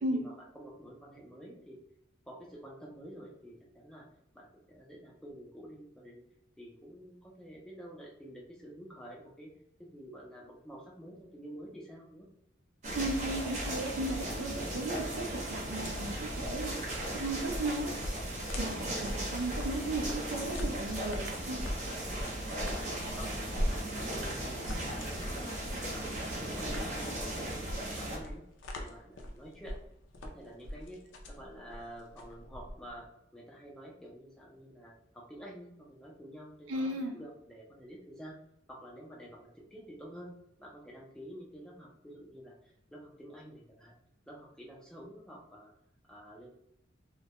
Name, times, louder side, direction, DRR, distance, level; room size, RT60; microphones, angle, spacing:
voice 1, 0.1-1.8 2.3-4.1 4.3-6.2 6.6-9.5 9.8-12.3 22.5-25.6 25.9-28.4 28.8-29.8 30.2-31.0 31.3-33.1 33.3-38.4 38.7-40.3 40.6-43.9 44.3-45.7 46.1-46.5, equal, 5° left, -3 dB, 0.4 m, -49 dB
sound 1, 12.8-28.2, right 1 dB, 40° right, 0.7 m, -37 dB
voice 2, 12.9-17.9 18.6-21.6 36.7-37.2, right 2 dB, 80° right, 4 dB, 0.5 m, -36 dB
sound 2, 15.8-33.1, equal, 70° left, 0.4 m, -41 dB
2.2 x 2.1 x 2.8 m, 0.79 s
head